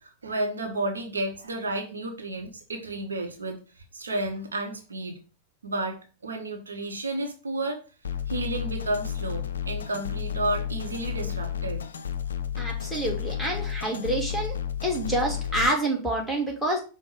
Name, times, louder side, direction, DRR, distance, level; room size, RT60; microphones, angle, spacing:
voice 1, 0.0-5.2 5.6-7.8 8.3-11.8, right 2 dB, 75° right, 3 dB, 0.8 m, -32 dB
sound 1, 8.0-15.7, left 9 dB, 70° left, 0.4 m, -32 dB
voice 2, 12.6-14.5 14.8-16.8, right 1 dB, 5° right, -2 dB, 1.5 m, -27 dB
5.2 x 2.1 x 4.8 m, 0.35 s
figure-of-eight pair, 90°, 0 cm